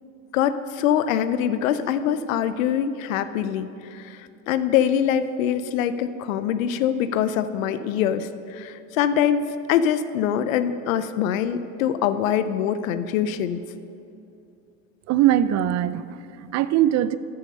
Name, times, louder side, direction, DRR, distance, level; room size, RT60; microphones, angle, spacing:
voice 1, 0.3-13.6, left 9 dB, 85° left, 12 dB, 0.6 m, -24 dB
voice 2, 15.1-17.2, right 12 dB, 45° right, 16 dB, 0.5 m, -21 dB
13.5 x 7.8 x 5.3 m, 2.6 s
supercardioid pair, 95°, 39 cm